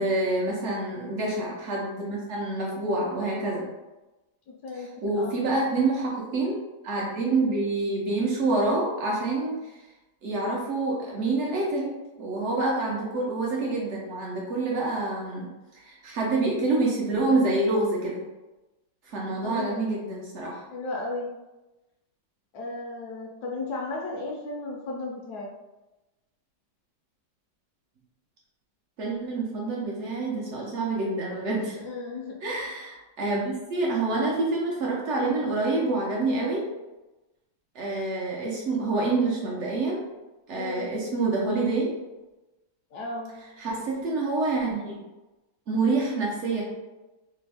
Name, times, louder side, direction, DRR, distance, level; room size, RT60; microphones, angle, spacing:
voice 1, 0.0-3.6 4.7-6.6 6.8-9.8 10.2-15.5 15.7-18.2 19.1-20.6 29.0-31.8 32.4-36.7 37.7-40.0 40.5-41.9 43.6-45.0 45.7-46.6, right 2 dB, 70° right, -3 dB, 0.6 m, -27 dB
voice 2, 4.5-4.9 5.1-5.4 19.4-20.0 20.7-21.3 22.5-25.5 31.8-32.4 40.5-40.9 42.9-43.3, left 2 dB, 75° left, -1 dB, 1.0 m, -35 dB
3.3 x 2.1 x 3.3 m, 1.1 s
omnidirectional pair, 1.9 m